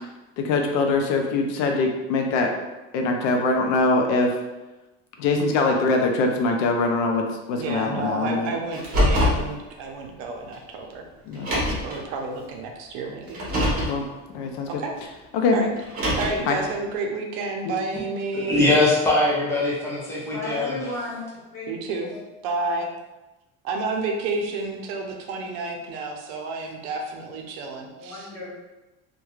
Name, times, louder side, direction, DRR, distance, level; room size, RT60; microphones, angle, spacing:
voice 1, 0.4-2.5 2.9-4.4 5.2-8.5 11.3-11.6 13.8-14.0 14.3-14.8 15.3-15.6 16.5-16.6 17.7-17.8, left 3 dB, 70° left, 3 dB, 0.5 m, -23 dB
voice 2, 7.6-11.0 11.6-13.4 14.8-14.9 15.5-15.7 16.1-18.7 21.7-22.1 22.4-22.9 23.6-28.3, right 3 dB, 75° right, 2 dB, 0.6 m, -30 dB
Car, 8.7-9.4 10.5-10.6 11.3-11.9 13.3-13.9 15.8-16.5, left 1 dB, 30° right, 0.8 m, -23 dB
voice 3, 18.3-20.7, left 2 dB, 10° left, -7 dB, 0.5 m, -21 dB
voice 4, 20.3-21.2 21.5-21.7 22.0-22.2 22.5-22.8 28.0-28.5, left 2 dB, 55° left, -6 dB, 1.1 m, -34 dB
2.3 x 2.2 x 3.0 m, 1.1 s
cardioid pair, 160°, 30 cm